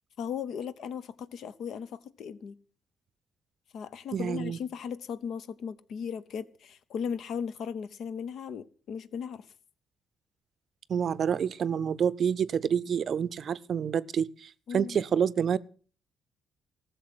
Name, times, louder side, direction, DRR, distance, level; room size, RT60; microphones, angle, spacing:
voice 1, 0.2-2.6 3.7-9.5 14.7-15.0, left 7 dB, 70° left, 0.8 m, -37 dB
voice 2, 4.1-4.6 10.9-15.6, right 7 dB, 55° right, 0.5 m, -28 dB
14.5 x 6.9 x 7.6 m
cardioid pair, 90°, 0 cm